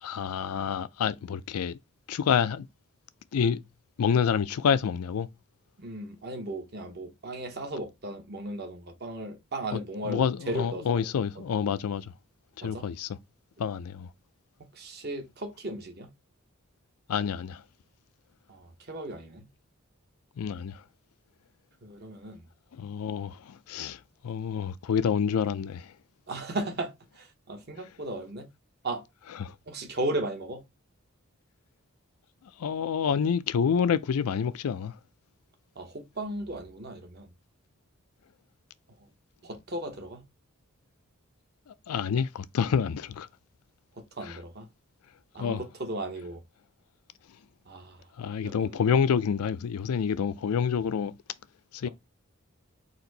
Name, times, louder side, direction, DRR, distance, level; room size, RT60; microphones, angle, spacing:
voice 1, 0.0-1.8 2.1-2.7 3.3-3.6 4.0-5.3 9.7-9.8 10.0-12.1 12.6-13.1 13.6-14.1 17.1-17.6 20.4-20.8 22.7-25.9 29.4-29.5 32.6-35.0 41.7-43.3 44.2-44.4 45.4-45.6 48.2-51.1 51.7-51.9, left 7 dB, 85° left, 0.4 m, -28 dB
voice 2, 5.8-11.1 12.6-12.9 14.7-16.1 18.5-19.5 21.8-22.5 26.3-28.5 28.8-29.1 29.7-30.6 35.8-37.3 39.4-40.2 44.0-44.7 45.3-46.4 47.7-48.1 48.4-48.8, right 1 dB, 45° right, 0.9 m, -36 dB
4.3 x 2.6 x 3.9 m
head